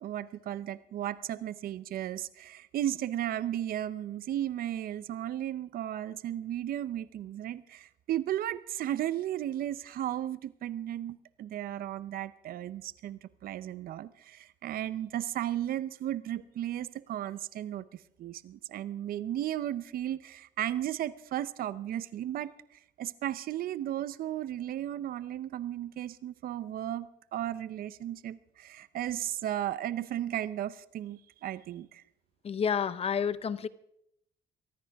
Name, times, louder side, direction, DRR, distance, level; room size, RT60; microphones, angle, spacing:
voice 1, 0.0-32.0, right 12 dB, 60° right, 16 dB, 0.7 m, -35 dB
voice 2, 32.4-33.7, left 7 dB, 35° left, 16 dB, 0.7 m, -29 dB
23.0 x 15.0 x 3.6 m, 0.74 s
cardioid pair, 110°, 17 cm